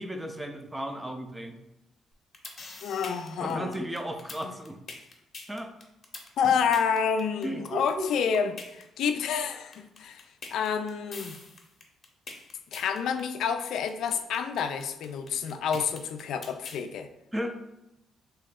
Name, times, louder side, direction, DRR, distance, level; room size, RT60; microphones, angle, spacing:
voice 1, 0.0-1.6 3.4-4.8 5.5-5.7 7.4-8.1 17.3-17.6, equal, 10° right, 5 dB, 0.5 m, -34 dB
sound 1, 2.1-16.8, left 3 dB, 45° left, 0.8 m, -43 dB
voice 2, 2.8-3.7 6.4-10.2 10.5-11.4 12.7-17.1, left 7 dB, 75° left, 8 dB, 0.3 m, -29 dB
3.0 x 2.8 x 3.6 m, 0.89 s
cardioid pair, 90°, 0 cm